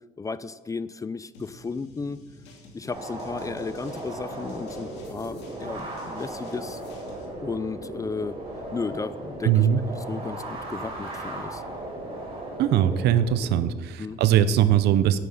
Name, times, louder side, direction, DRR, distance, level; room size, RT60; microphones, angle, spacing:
voice 1, 0.2-2.2 2.7-6.8 7.4-8.4 8.7-9.7 10.1-11.6 14.0-14.2, left 4 dB, 20° left, 16 dB, 0.4 m, -34 dB
sound 1, 1.3-7.3, left 2 dB, 90° left, 2.6 m, -50 dB
sound 2, 2.9-13.6, right 1 dB, 35° right, 4.2 m, -36 dB
voice 2, 9.4-9.8 12.6-15.2, right 10 dB, 80° right, 14 dB, 0.7 m, -21 dB
9.3 x 9.3 x 6.5 m, 1.4 s
cardioid pair, 110°, 17 cm